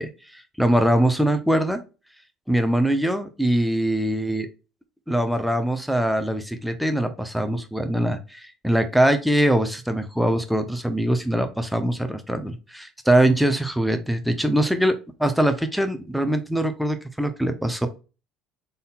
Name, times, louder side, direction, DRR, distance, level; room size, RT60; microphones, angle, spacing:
voice 1, 0.0-1.8 2.5-4.5 5.1-17.9, right 1 dB, ahead, 8 dB, 0.8 m, -22 dB
4.0 x 3.8 x 2.3 m, 0.31 s
hypercardioid pair, 70°, 0 cm